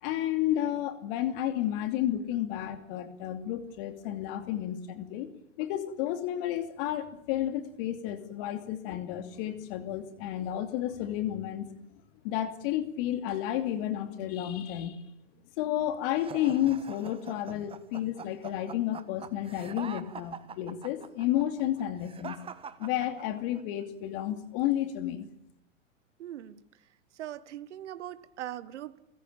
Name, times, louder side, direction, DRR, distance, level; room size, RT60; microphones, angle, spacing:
voice 1, 0.0-5.3 5.6-11.7 12.2-15.0 15.6-22.4 22.8-25.3, left 12 dB, 45° left, 8 dB, 2.8 m, -31 dB
sound 1, 16.2-23.6, right 6 dB, 15° right, 1.3 m, -44 dB
voice 2, 26.2-26.6 27.1-29.0, right 12 dB, 60° right, 14 dB, 1.6 m, -40 dB
30.0 x 16.0 x 8.8 m, 0.83 s
hypercardioid pair, 110°, 39 cm